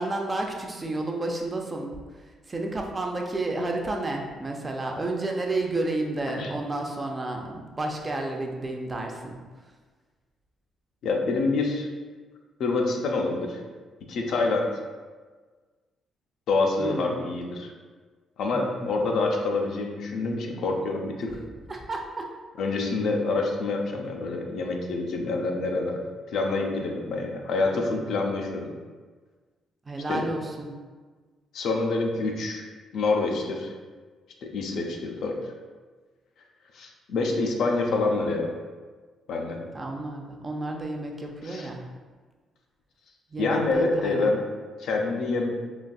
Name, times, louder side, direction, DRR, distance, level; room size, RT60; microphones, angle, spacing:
voice 1, 0.0-1.9 2.5-9.4 16.8-17.2 18.5-18.9 21.7-22.3 29.9-30.7 39.5-41.8 43.3-44.3, right 2 dB, 25° right, 1 dB, 0.5 m, -31 dB
voice 2, 11.0-11.9 12.6-13.6 14.1-14.7 16.5-17.7 18.4-21.3 22.6-26.0 26.3-28.7 30.1-30.2 31.5-32.6 32.9-33.7 34.4-35.4 36.7-38.5 39.3-39.6 41.4-41.7 43.4-44.4 44.8-45.5, left 3 dB, 70° left, 1 dB, 0.5 m, -26 dB
3.9 x 2.5 x 2.3 m, 1.4 s
cardioid pair, 90°, 0 cm